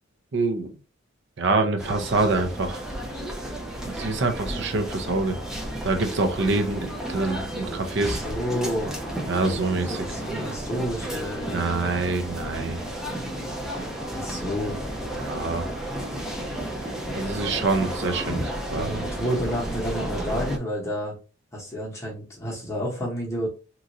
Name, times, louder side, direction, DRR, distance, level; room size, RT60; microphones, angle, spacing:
voice 1, 0.3-0.7 1.4-2.8 3.8-5.4 5.8-8.2 9.3-10.0 11.5-12.8 15.1-15.7 17.1-18.4 18.7-18.9, right 3 dB, 60° right, 0.6 m, -25 dB
sound 1, 1.8-20.6, right 1 dB, 5° right, 0.4 m, -32 dB
voice 2, 8.0-8.9 9.9-11.9 14.1-14.8 18.3-18.5 18.7-21.1 21.5-23.5, equal, 15° left, 0.9 m, -30 dB
3.0 x 2.5 x 2.6 m
head